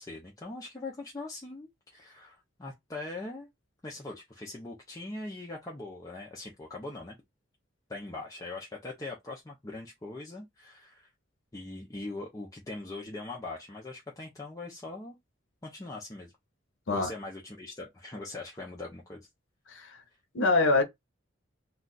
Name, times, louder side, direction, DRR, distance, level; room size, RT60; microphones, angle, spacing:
voice 1, 0.0-3.5 3.8-7.2 7.9-11.1 11.5-15.2 15.6-16.3 16.9-19.3, left 2 dB, 20° left, 0.5 m, -41 dB
voice 2, 19.7-20.0 20.3-20.8, left 3 dB, 75° left, 0.7 m, -25 dB
2.3 x 2.3 x 3.8 m
head